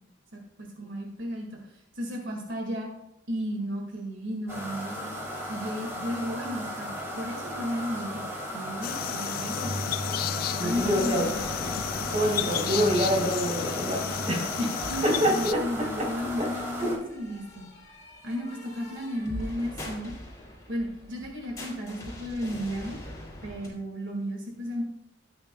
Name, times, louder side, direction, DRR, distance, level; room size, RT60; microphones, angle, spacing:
voice 1, 0.3-1.6 1.9-2.9 3.3-5.1 5.5-8.2 8.5-9.8 10.6-11.5 14.6-17.7 18.2-20.1 20.7-23.0 23.4-24.8, equal, 80° right, 0 dB, 1.9 m, -34 dB
sound 1, 4.5-16.9, equal, 15° right, 3.2 m, -35 dB
sound 2, 8.8-15.5, left 10 dB, 50° left, 0.3 m, -33 dB
voice 2, 10.6-11.2 11.6-11.7 12.1-14.0 14.3-14.4 15.0-15.6 16.0-16.1 16.4-16.5 16.8-16.9, equal, 35° right, -2 dB, 3.5 m, -26 dB
sound 3, 10.7-23.7, left 1 dB, 20° left, 2.9 m, -43 dB
15.0 x 8.9 x 2.3 m, 0.83 s
head